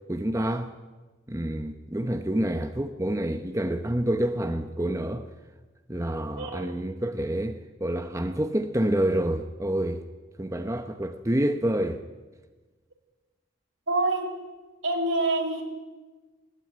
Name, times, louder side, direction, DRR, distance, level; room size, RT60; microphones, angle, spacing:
voice 1, 0.1-0.7 1.3-5.3 5.9-10.0 10.4-12.0, right 1 dB, 15° right, 0.8 m, -28 dB
voice 2, 6.4-6.7 13.9-14.3 14.8-15.6, right 2 dB, 75° right, 4.6 m, -26 dB
20.0 x 18.0 x 9.1 m
head